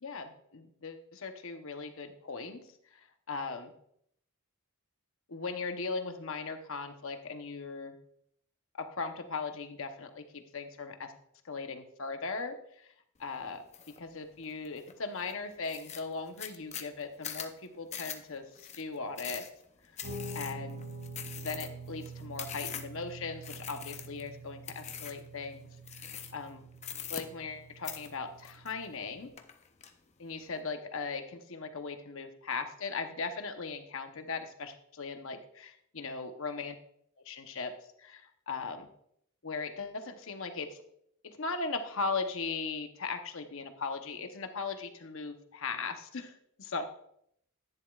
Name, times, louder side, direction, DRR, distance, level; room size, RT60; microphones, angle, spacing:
voice 1, 0.0-2.6 2.9-3.7 5.3-8.0 8.7-11.1 11.4-12.9 13.2-13.6 14.0-19.5 20.3-20.8 21.4-25.7 25.9-26.7 27.1-29.3 30.2-36.8 37.2-37.7 38.0-38.9 39.4-40.8 41.2-46.8, left 4 dB, 65° left, 6 dB, 0.9 m, -38 dB
sound 1, 13.7-14.0 14.4-14.9 15.3-15.4 15.6-23.0 23.4-24.3 24.6-25.3 25.8-26.5 26.8-27.6 27.8-29.0 29.4-29.9, left 8 dB, 30° left, 0.6 m, -42 dB
Guitar, 20.0-29.3, right 2 dB, 55° right, 2.9 m, -46 dB
10.5 x 9.9 x 2.4 m, 0.70 s
head